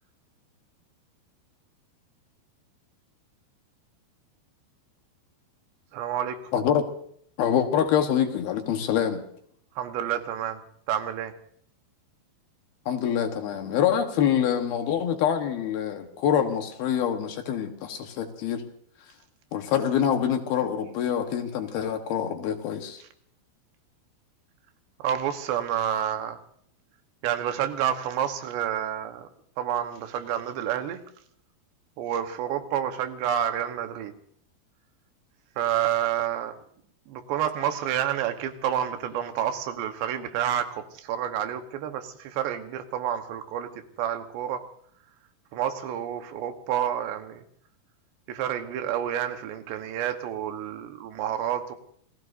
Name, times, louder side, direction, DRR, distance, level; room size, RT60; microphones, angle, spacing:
voice 1, 5.9-6.4 9.8-10.6 10.9-11.3 25.0-26.4 27.2-29.3 29.6-31.0 32.0-34.1 35.6-36.6 37.1-43.7 44.0-44.7 45.5-47.4 48.3-51.8, right 10 dB, 85° right, 7 dB, 3.4 m, -29 dB
voice 2, 6.5-6.8 7.4-9.2 12.9-18.6 19.5-23.0, left 9 dB, 70° left, 5 dB, 3.0 m, -25 dB
28.5 x 19.0 x 2.7 m, 0.65 s
omnidirectional pair, 4.9 m